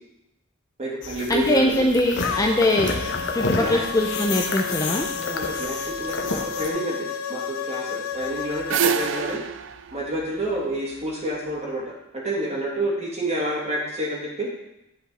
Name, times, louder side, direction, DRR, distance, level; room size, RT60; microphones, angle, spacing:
voice 1, 0.8-1.8 3.6-3.8 5.2-9.4 9.9-11.8 12.1-14.5, right 1 dB, 35° right, -4 dB, 2.5 m, -29 dB
sound 1, 1.0-6.7, left 3 dB, 60° left, 1.0 m, -30 dB
voice 2, 1.3-2.9 3.3-5.1, left 1 dB, 15° left, 1 dB, 0.6 m, -22 dB
sound 2, 2.2-9.4, left 6 dB, 85° left, 0.5 m, -32 dB
sound 3, 8.2-11.4, right 7 dB, 65° right, 0.4 m, -27 dB
10.0 x 5.6 x 4.2 m, 0.87 s
head